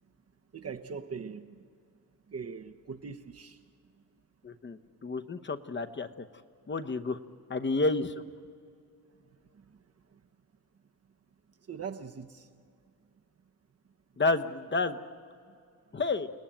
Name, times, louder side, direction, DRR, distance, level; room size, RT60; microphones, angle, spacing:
voice 1, 0.5-1.5 2.3-3.6 11.7-12.5, right 5 dB, 40° right, 0.9 m, -41 dB
voice 2, 4.4-6.3 6.7-7.2 7.5-8.2 14.2-15.0 15.9-16.3, left 3 dB, 30° left, 1.0 m, -30 dB
30.0 x 18.5 x 8.9 m
wide cardioid pair, 130°, 36 cm